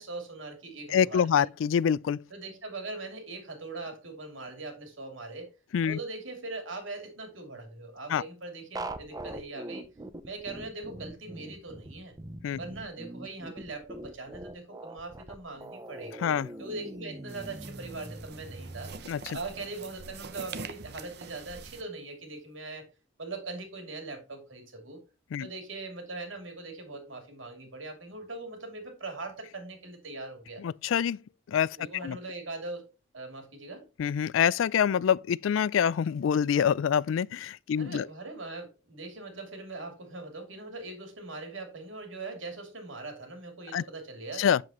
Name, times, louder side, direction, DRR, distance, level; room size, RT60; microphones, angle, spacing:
voice 1, 0.0-1.5 2.3-5.5 5.8-9.9 10.2-12.1 12.6-16.3 16.6-18.9 19.3-22.9 23.2-25.0 25.4-30.6 31.8-33.8 37.8-44.5, right 3 dB, 85° right, 2.8 m, -41 dB
voice 2, 0.9-2.2 5.7-6.0 8.1-8.2 12.4-12.6 16.2-16.5 19.1-19.4 25.3-25.5 30.6-31.2 31.5-32.2 34.0-38.1 43.7-43.8 44.4-44.6, left 8 dB, 80° left, 0.3 m, -26 dB
sound 1, 8.7-18.9, right 1 dB, 20° right, 0.6 m, -42 dB
sound 2, 17.3-21.8, right 5 dB, 55° right, 0.7 m, -44 dB
7.8 x 7.3 x 2.9 m
head